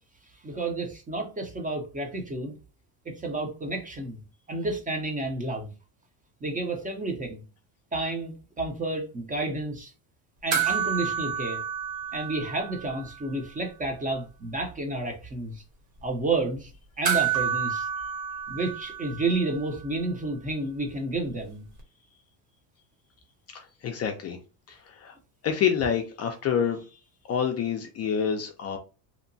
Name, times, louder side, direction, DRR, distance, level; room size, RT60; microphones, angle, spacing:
voice 1, 0.4-2.5 3.0-4.2 4.5-5.7 6.4-7.4 7.9-9.9 10.4-11.6 12.1-15.6 16.0-16.7 17.0-17.9 18.5-21.7, right 2 dB, 20° right, 0.5 m, -30 dB
sound 1, 10.5-13.2 13.4-13.5 17.0-19.6 21.8-21.9, right 8 dB, 50° right, 1.1 m, -29 dB
voice 2, 23.5-24.4 24.7-25.1 25.4-27.0 27.3-28.8, left 7 dB, 35° left, 0.4 m, -28 dB
2.9 x 2.1 x 2.6 m
supercardioid pair, 110°, 46 cm